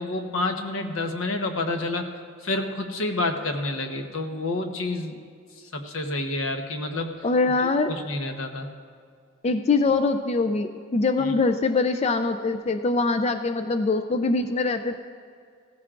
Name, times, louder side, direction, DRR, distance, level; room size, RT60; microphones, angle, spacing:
voice 1, 0.0-2.1 2.4-5.2 5.7-7.1 7.6-8.7 11.2-11.3, left 2 dB, 80° left, 5 dB, 1.0 m, -29 dB
voice 2, 7.2-7.9 9.4-15.0, left 3 dB, 30° left, 8 dB, 0.4 m, -23 dB
16.0 x 14.5 x 2.5 m, 2.2 s
head